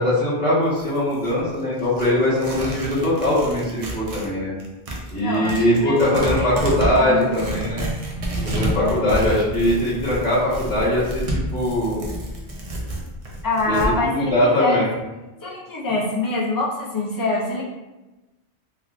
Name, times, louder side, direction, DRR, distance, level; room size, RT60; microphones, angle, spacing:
voice 1, 0.0-4.5 5.1-7.9 8.4-12.0 13.7-13.8 14.0-14.8, left 1 dB, 10° left, -10 dB, 0.9 m, -21 dB
Tearing, 0.6-4.3 4.6-13.9, right 1 dB, 45° right, 0.5 m, -29 dB
voice 2, 5.2-6.7 6.9-7.3 8.7-9.0 13.4-14.8 15.4-17.6, left 2 dB, 25° left, -4 dB, 0.4 m, -25 dB
3.4 x 2.3 x 2.4 m, 1.1 s
omnidirectional pair, 1.1 m